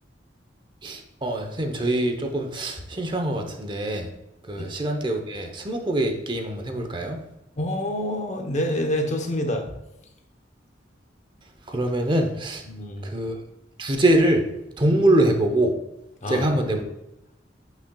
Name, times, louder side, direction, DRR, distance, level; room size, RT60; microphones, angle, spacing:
voice 1, 0.8-4.1 4.5-7.2 11.7-12.6 13.0-13.4 13.8-14.4 14.8-15.7 16.3-16.8, right 1 dB, 25° right, 4 dB, 0.8 m, -23 dB
voice 2, 7.6-9.7 12.6-13.1 16.2-16.7, left 1 dB, 40° left, 5 dB, 0.9 m, -27 dB
8.4 x 5.8 x 2.3 m, 0.88 s
head